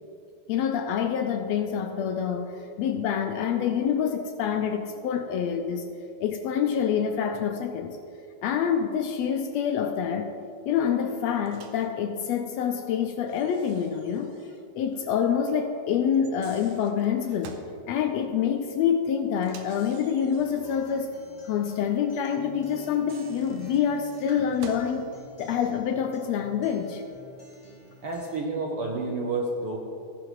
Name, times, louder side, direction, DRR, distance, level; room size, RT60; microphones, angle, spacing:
voice 1, 0.5-5.8 6.2-8.0 8.4-10.3 10.7-14.3 14.8-17.6 17.9-21.1 21.5-25.1 25.4-27.0, left 8 dB, 80° left, 6 dB, 1.6 m, -26 dB
Microwave oven, 11.5-11.9 13.3-14.7 14.9-15.0 16.1-17.8 19.4-20.8 22.8-25.0, right 6 dB, 85° right, 2.2 m, -48 dB
Acoustic guitar, 20.4-28.4, equal, 15° left, 1.5 m, -50 dB
voice 2, 28.0-29.8, right 3 dB, 65° right, 0 dB, 1.4 m, -29 dB
15.0 x 11.0 x 3.2 m, 2.6 s
omnidirectional pair, 3.4 m